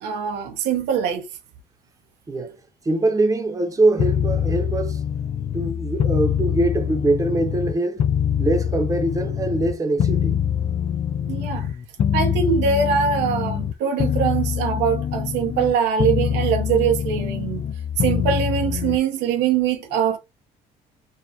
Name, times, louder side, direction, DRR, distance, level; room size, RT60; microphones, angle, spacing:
voice 1, 0.0-1.3 11.3-11.7 12.1-17.6 18.0-20.2, right 7 dB, 90° right, 0.9 m, -22 dB
voice 2, 2.8-5.0 5.5-8.1 8.4-10.5, right 2 dB, 20° right, 0.9 m, -23 dB
sound 1, 4.0-7.7 8.0-13.7 14.0-15.7 16.0-19.0, left 8 dB, 40° left, 0.4 m, -24 dB
4.5 x 2.4 x 2.8 m
cardioid pair, 110°, 17 cm